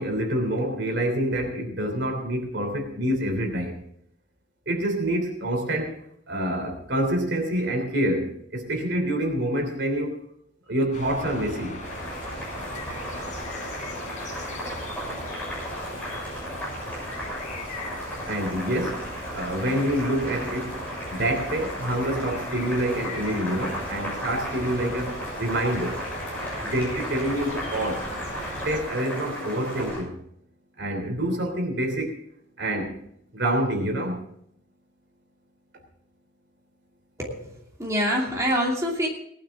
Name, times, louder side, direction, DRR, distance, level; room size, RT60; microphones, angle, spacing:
voice 1, 0.0-3.8 4.7-6.0 6.3-10.2 10.7-11.8 18.2-26.0 26.6-28.1 28.6-30.1 30.8-32.1 32.6-32.9 33.3-34.2, right 1 dB, 60° right, 4 dB, 3.1 m, -27 dB
sound 1, 10.9-28.8, left 1 dB, 40° left, 3.6 m, -38 dB
Boiling, 11.8-30.0, equal, 10° left, 6.9 m, -35 dB
voice 2, 37.2-39.1, equal, 15° right, -3 dB, 2.8 m, -26 dB
19.0 x 11.5 x 3.7 m, 0.72 s
head